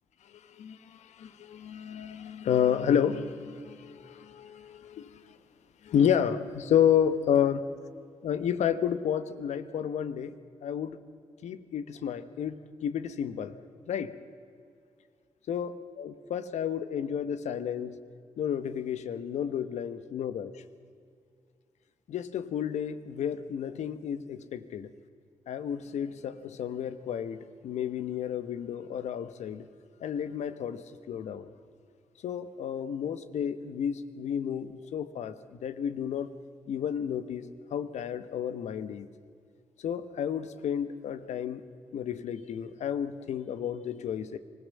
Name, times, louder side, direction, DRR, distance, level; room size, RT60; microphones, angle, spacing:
voice 1, 0.6-5.2 5.8-7.6 8.2-10.3 10.6-11.0 11.4-13.6 13.9-14.1 15.5-18.0 18.4-20.5 22.1-24.9 25.5-29.7 30.0-31.5 32.2-36.3 36.7-39.1 39.8-41.6 41.9-44.4, left 8 dB, 80° left, 12 dB, 1.1 m, -31 dB
24.5 x 16.5 x 7.5 m, 2.3 s
supercardioid pair, 50°, 12 cm